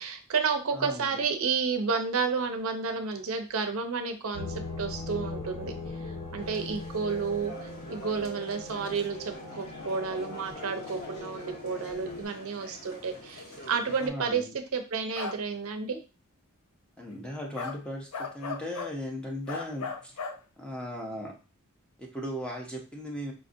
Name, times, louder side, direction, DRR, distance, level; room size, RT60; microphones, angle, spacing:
voice 1, 0.0-5.7 6.3-14.5 14.7-16.0, right 5 dB, 70° right, 6 dB, 0.6 m, -31 dB
voice 2, 0.7-1.2 14.0-14.5 17.0-20.1 20.6-21.3 22.0-23.3, equal, 5° left, 0 dB, 0.7 m, -37 dB
sound 1, 4.3-12.2, left 2 dB, 60° left, 1.2 m, -40 dB
sound 2, 6.4-14.1, left 1 dB, 45° left, 1.0 m, -46 dB
sound 3, 15.2-15.4 17.6-17.8 18.1-19.0 19.5-20.4, left 5 dB, 85° left, 0.5 m, -35 dB
4.9 x 2.6 x 2.6 m, 0.31 s
head